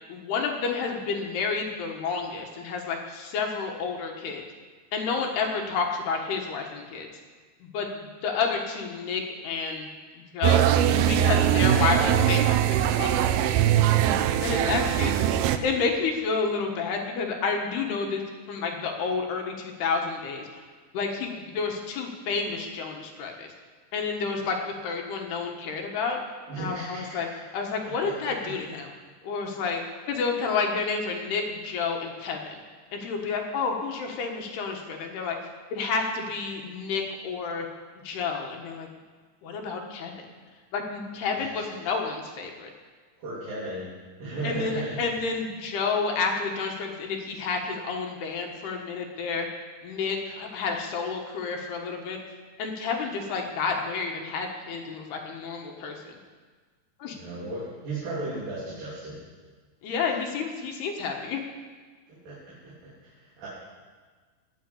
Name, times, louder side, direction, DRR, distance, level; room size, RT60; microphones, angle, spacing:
voice 1, 0.1-4.4 4.9-7.1 7.6-9.9 10.3-10.7 11.0-12.6 13.0-13.4 14.4-15.1 15.6-18.2 18.5-20.6 20.9-23.5 23.9-24.6 24.8-26.2 26.6-27.3 27.5-28.9 29.2-29.8 30.1-32.6 32.9-35.4 35.7-37.7 38.0-38.9 39.4-40.1 40.7-42.7 44.4-49.5 49.8-52.2 52.6-56.0 57.0-57.2 59.8-61.4, left 5 dB, 70° left, 2 dB, 3.3 m, -30 dB
sound 1, 10.4-15.6, right 11 dB, 80° right, 2.3 m, -21 dB
voice 2, 26.5-27.2 27.8-28.5 41.4-41.6 43.2-43.9 44.2-45.0 57.2-59.2 62.1-63.5, right 2 dB, 50° right, -8 dB, 4.9 m, -36 dB
20.0 x 7.5 x 8.4 m, 1.5 s
omnidirectional pair, 5.1 m